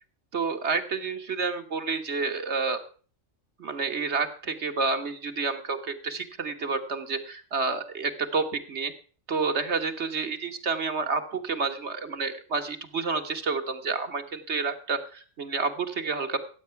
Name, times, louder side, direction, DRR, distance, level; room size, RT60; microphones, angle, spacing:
voice 1, 0.3-2.8 3.6-8.9 9.3-16.4, right 4 dB, 60° right, 6 dB, 1.7 m, -29 dB
15.0 x 8.7 x 5.7 m, 0.40 s
omnidirectional pair, 1.3 m